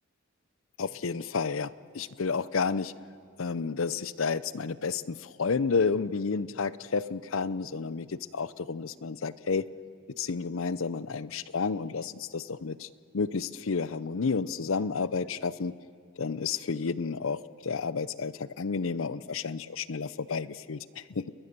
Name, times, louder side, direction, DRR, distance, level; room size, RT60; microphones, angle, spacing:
voice 1, 0.8-2.9 3.4-9.7 10.2-12.9 13.1-15.7 16.2-21.3, left 5 dB, 75° left, 18 dB, 0.6 m, -31 dB
30.0 x 21.0 x 6.8 m, 2.4 s
head